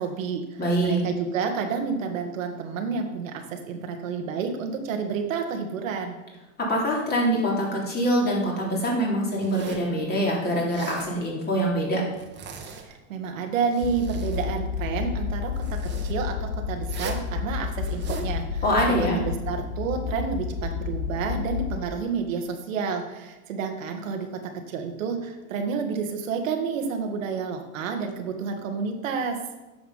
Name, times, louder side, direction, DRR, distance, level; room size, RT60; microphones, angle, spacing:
voice 1, 0.0-6.2 12.8-18.6 19.2-29.4, right 5 dB, 85° right, 4 dB, 1.8 m, -30 dB
voice 2, 0.6-1.1 6.7-12.0 18.6-19.2, equal, 25° left, -3 dB, 3.6 m, -24 dB
Zipper (clothing), 9.4-9.9 10.6-11.1 12.1-13.0 13.5-14.5 15.6-16.1 16.8-17.3 17.8-18.3, right 5 dB, 30° right, 1.7 m, -39 dB
sound 1, 13.8-21.8, left 6 dB, 90° left, 1.0 m, -30 dB
9.6 x 7.2 x 5.7 m, 1.1 s
supercardioid pair, 125°, 38 cm